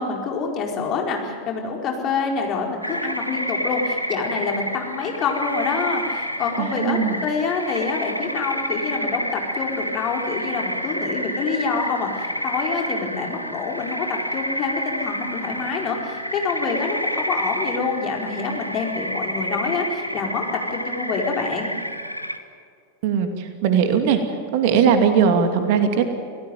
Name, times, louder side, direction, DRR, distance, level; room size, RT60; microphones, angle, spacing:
voice 1, 0.0-21.7, left 5 dB, 35° left, 1 dB, 4.7 m, -26 dB
sound 1, 2.8-22.4, equal, 90° right, 1.4 m, -29 dB
voice 2, 6.6-7.2 23.0-24.2 24.5-26.1, right 7 dB, 50° right, 7 dB, 2.6 m, -19 dB
28.5 x 17.5 x 9.3 m, 2.2 s
figure-of-eight pair, 90°, 0 cm